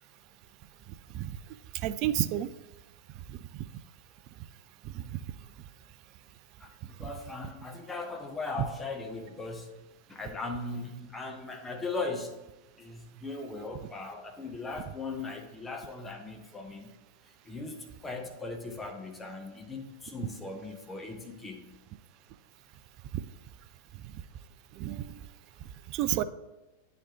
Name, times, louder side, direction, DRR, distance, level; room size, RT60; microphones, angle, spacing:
voice 1, 1.8-2.5 4.9-5.2 7.0-7.1 24.8-25.2 25.9-26.2, right 13 dB, 40° right, 12 dB, 0.3 m, -30 dB
voice 2, 6.6-9.7 10.1-12.3 12.8-16.9 17.4-21.7, left 3 dB, 15° left, 3 dB, 0.9 m, -38 dB
9.9 x 4.2 x 2.9 m, 1.1 s
figure-of-eight pair, 90°, 0 cm